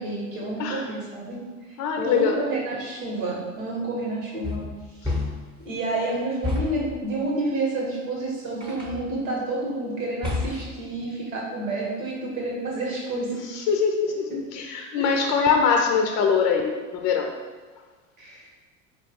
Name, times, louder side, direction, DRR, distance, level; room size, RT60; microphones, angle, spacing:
voice 1, 0.0-1.4 2.0-4.6 5.6-13.6 15.0-15.4 18.2-18.5, right 2 dB, 85° right, -3 dB, 1.3 m, -29 dB
voice 2, 1.8-2.4 5.0-5.1 13.3-17.3, left 6 dB, 40° left, 3 dB, 0.5 m, -23 dB
sound 1, 4.4-5.6 6.4-7.0 8.6-9.1 10.2-10.8, left 3 dB, 10° right, 0.9 m, -29 dB
4.2 x 2.4 x 3.5 m, 1.4 s
hypercardioid pair, 85°, 39 cm